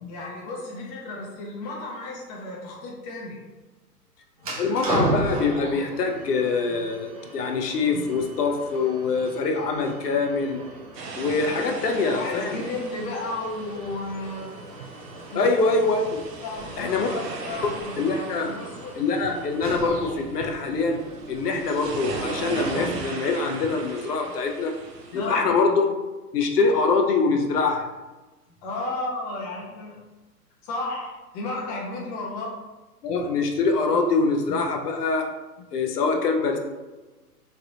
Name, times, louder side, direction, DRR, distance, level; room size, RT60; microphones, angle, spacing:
voice 1, 0.1-3.4 11.6-14.6 15.3-15.6 16.4-19.0 25.1-25.5 28.6-30.0 30.6-32.6, left 2 dB, 25° left, -3 dB, 0.5 m, -33 dB
sound 1, 4.4-23.3, right 1 dB, 25° right, 0.4 m, -36 dB
voice 2, 4.6-10.6 11.2-12.6 15.4-16.2 16.8-17.1 18.0-18.5 19.0-21.0 21.3-24.7 25.1-26.0 26.3-27.8 33.0-35.3 35.7-36.6, left 4 dB, 75° left, 3 dB, 0.6 m, -24 dB
sound 2, 10.9-25.3, right 3 dB, 90° right, 0.6 m, -39 dB
3.1 x 2.3 x 2.7 m, 1.2 s
hypercardioid pair, 120°, 48 cm